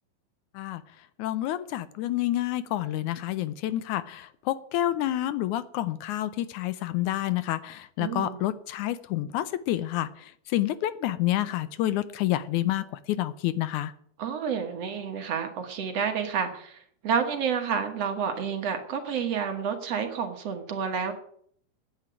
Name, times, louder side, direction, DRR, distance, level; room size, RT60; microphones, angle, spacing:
voice 1, 1.2-13.9, left 14 dB, 80° left, 15 dB, 2.0 m, -29 dB
voice 2, 8.0-8.4 14.2-21.1, right 7 dB, 60° right, 5 dB, 2.2 m, -29 dB
9.7 x 8.9 x 8.9 m, 0.63 s
omnidirectional pair, 3.6 m